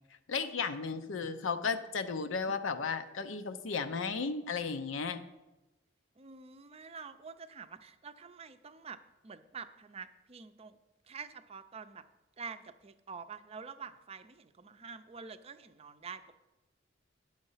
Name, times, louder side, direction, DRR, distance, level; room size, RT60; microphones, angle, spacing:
voice 1, 0.3-5.2, left 5 dB, 85° left, 8 dB, 0.6 m, -34 dB
voice 2, 6.2-9.0 9.2-10.8 11.1-12.1 12.4-16.2, right 5 dB, 30° right, 11 dB, 0.5 m, -47 dB
9.9 x 6.4 x 5.6 m, 1.0 s
head